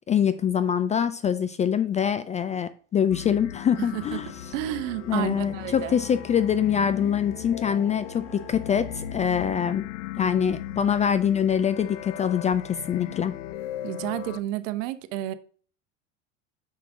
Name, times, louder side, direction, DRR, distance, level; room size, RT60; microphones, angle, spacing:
voice 1, 0.1-4.3 5.1-9.8 10.2-13.3, left 8 dB, 20° left, 0.3 m, -24 dB
sound 1, 3.1-14.4, left 13 dB, 65° left, 0.6 m, -38 dB
voice 2, 3.8-4.2 4.5-6.0 13.8-15.3, right 14 dB, 65° right, 0.9 m, -31 dB
Musical instrument, 4.0-9.7, equal, 15° right, 1.1 m, -47 dB
6.4 x 5.6 x 3.6 m
hypercardioid pair, 85°, 39 cm